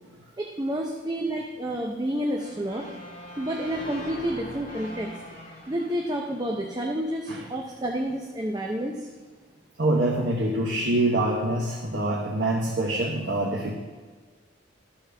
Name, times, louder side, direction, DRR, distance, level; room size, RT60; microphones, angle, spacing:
voice 1, 0.4-2.8 3.4-5.1 5.7-8.9, right 1 dB, 20° right, 0 dB, 0.6 m, -29 dB
sound 1, 2.2-7.3, left 1 dB, 35° left, 2.5 m, -43 dB
voice 2, 9.8-13.7, right 1 dB, 65° right, -3 dB, 1.1 m, -25 dB
14.0 x 5.8 x 3.4 m, 1.4 s
head